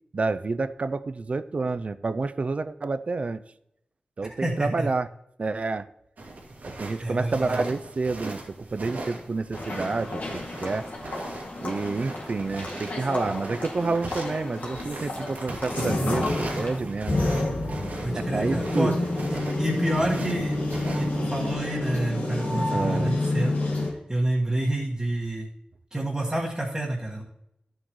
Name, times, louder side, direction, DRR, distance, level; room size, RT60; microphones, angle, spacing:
voice 1, 0.1-3.4 4.2-5.1 5.4-5.9 6.6-10.9 11.6-17.2 18.1-19.0 22.7-23.1, right 3 dB, 50° right, 13 dB, 0.4 m, -29 dB
voice 2, 4.3-4.9 7.0-7.6 18.0-18.9 19.3-20.6 20.9-25.5 25.9-27.2, right 1 dB, 20° right, -5 dB, 1.7 m, -28 dB
sound 1, 6.2-21.5, right 2 dB, 80° right, 2.4 m, -39 dB
sound 2, 9.5-16.8, left 2 dB, 75° left, 2.2 m, -36 dB
sound 3, 15.7-23.9, left 2 dB, 90° left, 2.3 m, -27 dB
13.0 x 7.9 x 3.1 m, 0.79 s
wide cardioid pair, 90°, 3 cm